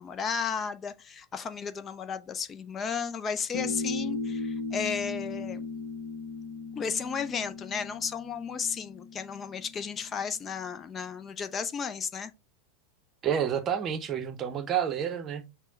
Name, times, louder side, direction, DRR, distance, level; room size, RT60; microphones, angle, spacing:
voice 1, 0.0-5.6 6.8-12.3, left 6 dB, 25° left, 0.4 m, -34 dB
sound 1, 3.5-10.5, left 3 dB, 55° left, 0.8 m, -37 dB
voice 2, 13.2-15.5, right 8 dB, 30° right, 0.7 m, -29 dB
6.2 x 2.1 x 3.8 m
figure-of-eight pair, 85°, 0 cm